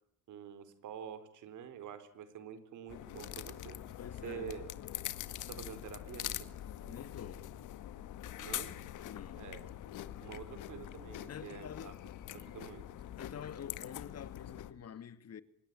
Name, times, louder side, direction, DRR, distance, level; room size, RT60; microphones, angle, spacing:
voice 1, 0.3-3.8 4.2-4.7 5.5-6.5 6.9-7.0 8.4-8.8 9.4-9.7 10.2-11.9 12.3-12.8, right 8 dB, 80° right, 4.3 m, -47 dB
sound 1, 2.9-14.7, left 12 dB, 85° left, 1.9 m, -44 dB
voice 2, 4.0-4.5 6.9-7.5 9.0-9.5 11.3-12.0 13.2-15.4, left 8 dB, 55° left, 2.4 m, -47 dB
25.5 x 21.5 x 9.9 m
cardioid pair, 90°, 30 cm